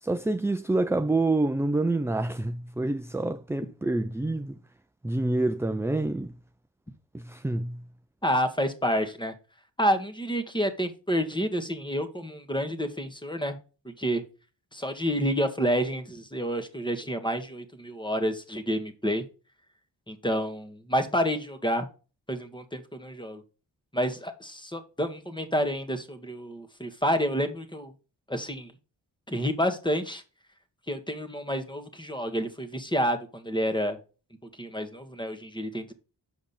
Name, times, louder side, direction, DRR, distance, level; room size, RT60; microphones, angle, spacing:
voice 1, 0.0-4.6 5.0-6.3 7.1-7.8, right 2 dB, 5° right, 0.4 m, -27 dB
voice 2, 8.2-9.3 9.8-13.6 13.8-14.2 14.7-19.2 20.1-21.9 22.3-23.4 23.9-27.9 28.3-28.7 29.3-30.2 30.9-34.0 34.6-35.9, equal, 10° left, 1.4 m, -29 dB
7.0 x 5.1 x 4.2 m
cardioid pair, 50°, 45 cm